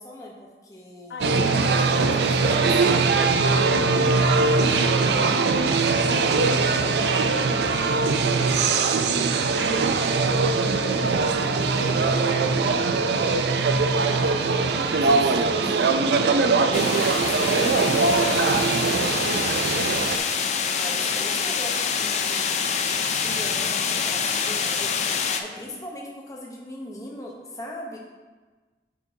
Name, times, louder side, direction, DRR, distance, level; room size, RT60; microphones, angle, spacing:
voice 1, 0.0-1.2 1.9-2.2 2.5-3.3 11.6-12.4 14.1-16.5 16.9-19.6 20.7-22.9 23.2-24.9 25.4-28.0, left 1 dB, 20° left, -2 dB, 0.8 m, -39 dB
voice 2, 1.1-2.5 3.8-7.5 8.1-11.6, left 2 dB, 80° left, 4 dB, 0.6 m, -39 dB
sound 1, 1.2-20.2, right 4 dB, 75° right, 0.4 m, -21 dB
sound 2, 16.7-25.4, left 6 dB, 40° left, 0.3 m, -26 dB
7.9 x 5.3 x 2.7 m, 1.3 s
head